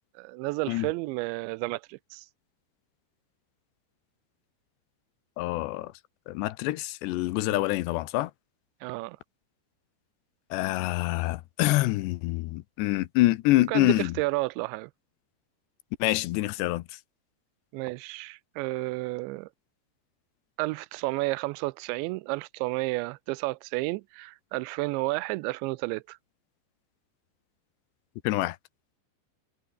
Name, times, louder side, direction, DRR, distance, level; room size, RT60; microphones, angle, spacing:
voice 1, 0.2-2.3 7.5-7.6 8.8-9.2 13.5-14.9 17.7-19.5 20.6-26.2, right 23 dB, 90° right, 2.9 m, -31 dB
voice 2, 5.4-5.9 6.3-8.3 10.5-14.1 16.0-16.8 28.2-28.6, left 18 dB, 80° left, 3.0 m, -26 dB
omnidirectional pair, 5.1 m